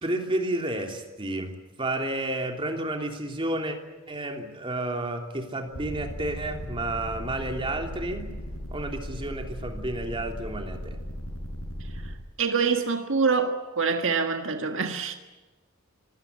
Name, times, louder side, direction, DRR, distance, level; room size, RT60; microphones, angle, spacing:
voice 1, 0.0-3.8 4.1-8.3 8.7-11.0, right 1 dB, 25° right, 3.2 m, -31 dB
sound 1, 5.7-12.1, equal, 75° left, 7.9 m, -37 dB
voice 2, 12.4-15.2, right 5 dB, 60° right, 1.7 m, -25 dB
25.5 x 17.5 x 9.7 m
head